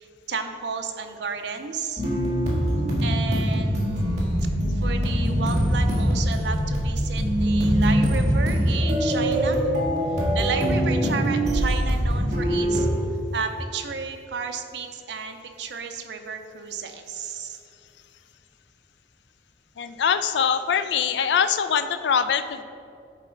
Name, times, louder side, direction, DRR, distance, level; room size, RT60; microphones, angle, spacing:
voice 1, 0.0-2.0 3.0-4.0 4.7-9.7 10.1-12.9 13.3-17.6, right 5 dB, 80° right, 6 dB, 0.6 m, -33 dB
sound 1, 2.0-12.9, equal, 40° right, 1.7 m, -23 dB
voice 2, 19.8-22.6, left 7 dB, 80° left, 10 dB, 0.3 m, -23 dB
10.5 x 4.2 x 3.8 m, 2.4 s
head